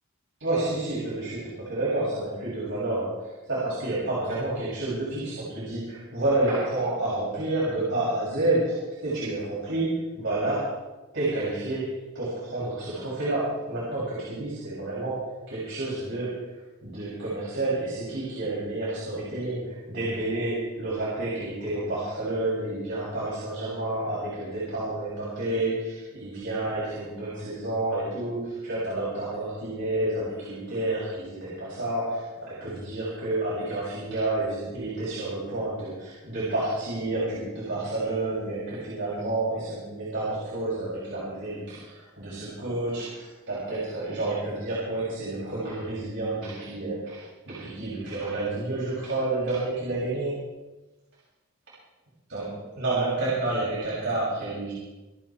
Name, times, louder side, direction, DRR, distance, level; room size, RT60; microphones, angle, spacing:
voice 1, 0.4-10.8 11.1-50.4 52.3-54.7, right 2 dB, 65° right, -9 dB, 6.8 m, -29 dB
27.5 x 9.3 x 4.5 m, 1.1 s
head